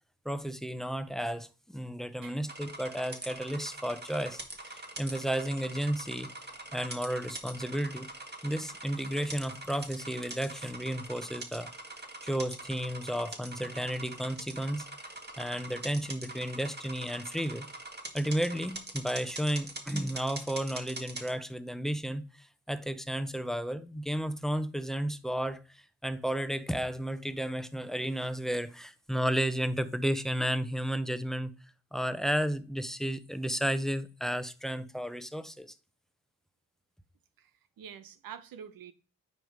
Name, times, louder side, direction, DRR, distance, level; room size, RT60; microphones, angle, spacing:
voice 1, 0.2-6.3 6.7-8.1 8.4-11.7 12.2-14.9 15.4-17.7 18.1-31.5 31.9-35.7, equal, ahead, 0.8 m, -33 dB
sound 1, 2.5-21.3, right 2 dB, 30° right, 1.8 m, -43 dB
voice 2, 37.8-38.9, right 8 dB, 80° right, 0.9 m, -46 dB
9.2 x 3.2 x 5.2 m
cardioid pair, 65°, 34 cm